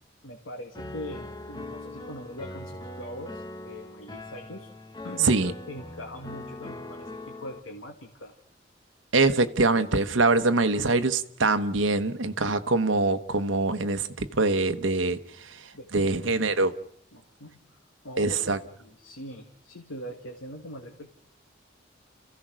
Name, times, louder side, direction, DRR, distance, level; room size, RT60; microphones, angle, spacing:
voice 1, 0.2-4.7 5.0-8.3 15.7-16.1 17.1-17.8 18.0-18.4 18.8-21.1, equal, 85° left, 1.9 m, -41 dB
Piano, 0.7-7.6, left 1 dB, 20° left, 0.9 m, -41 dB
voice 2, 9.1-16.7 18.2-18.6, right 3 dB, 85° right, 1.1 m, -24 dB
30.0 x 15.5 x 6.2 m
head